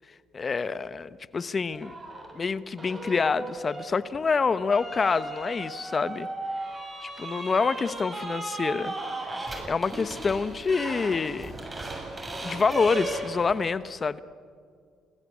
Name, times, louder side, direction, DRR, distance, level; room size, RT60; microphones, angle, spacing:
voice 1, 0.3-1.9 2.3-6.3 7.0-8.9 9.2-9.3 9.7-11.6 12.4-14.2, left 5 dB, 35° left, 14 dB, 1.0 m, -27 dB
sound 1, 1.7-2.3 2.8-13.7, right 2 dB, 25° right, 7.3 m, -36 dB
29.5 x 20.5 x 8.5 m, 2.1 s
supercardioid pair, 80°, 0 cm